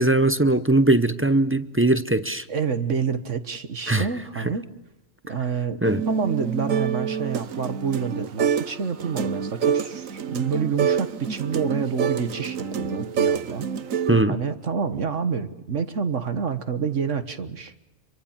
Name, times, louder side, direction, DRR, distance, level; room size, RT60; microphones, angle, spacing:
voice 1, 0.0-2.4 3.9-4.1 5.8-6.0 14.1-14.4, right 2 dB, 15° right, 0.5 m, -20 dB
voice 2, 2.5-4.6 5.3-5.8 6.1-13.7 14.3-17.7, right 6 dB, 65° right, 1.7 m, -28 dB
sound 1, 5.8-8.7 9.0-14.2, right 7 dB, 80° right, 1.5 m, -27 dB
27.0 x 24.0 x 7.3 m
omnidirectional pair, 1.4 m